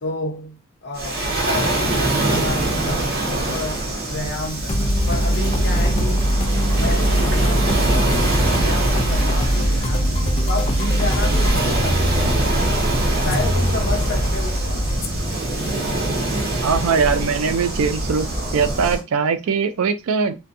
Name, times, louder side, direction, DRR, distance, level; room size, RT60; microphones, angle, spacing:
voice 1, 0.0-6.4 6.7-10.1 10.5-12.4 13.2-14.9, left 2 dB, 55° left, 0.8 m, -31 dB
Waves surf, 0.9-19.0, right 1 dB, 50° right, 0.9 m, -24 dB
sound 1, 4.7-18.1, equal, 30° left, 0.4 m, -22 dB
voice 2, 16.6-18.3 18.5-20.3, right 5 dB, 85° right, 0.4 m, -21 dB
2.5 x 2.2 x 2.5 m
head